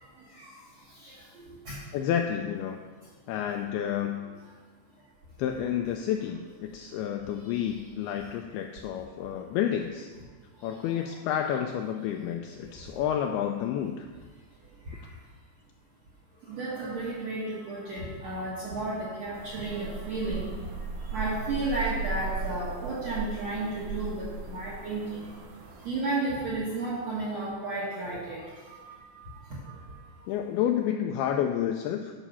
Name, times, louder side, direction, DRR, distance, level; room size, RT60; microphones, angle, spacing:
voice 1, 1.0-1.8 10.7-10.8 11.0-11.1 14.9-15.0 16.5-20.5 21.1-25.3 25.8-29.8, right 2 dB, 60° right, -6 dB, 1.8 m, -33 dB
voice 2, 1.9-2.8 3.3-4.2 5.4-10.1 10.6-14.1 30.3-32.1, left 9 dB, 85° left, 4 dB, 2.2 m, -30 dB
sound 1, 19.3-25.9, right 3 dB, 75° right, 1.8 m, -37 dB
11.0 x 6.0 x 5.6 m, 1.5 s
omnidirectional pair, 5.0 m